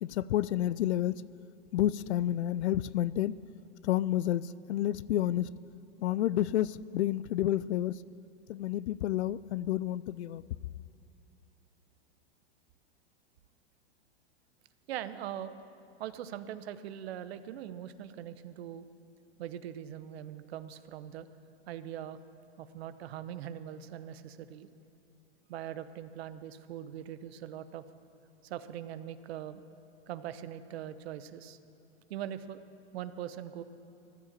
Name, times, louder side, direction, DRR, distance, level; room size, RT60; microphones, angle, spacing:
voice 1, 0.0-1.2 1.7-3.3 3.8-5.5 6.0-7.9 8.5-10.4, left 13 dB, 80° left, 19 dB, 0.5 m, -30 dB
voice 2, 14.9-15.6 16.0-18.9 19.4-21.3 21.7-22.2 22.6-24.7 25.5-27.8 28.4-29.6 30.1-31.6 32.1-32.6 32.9-33.6, right 10 dB, 65° right, 12 dB, 1.0 m, -41 dB
14.5 x 11.5 x 7.5 m, 2.8 s
hypercardioid pair, 125°, 33 cm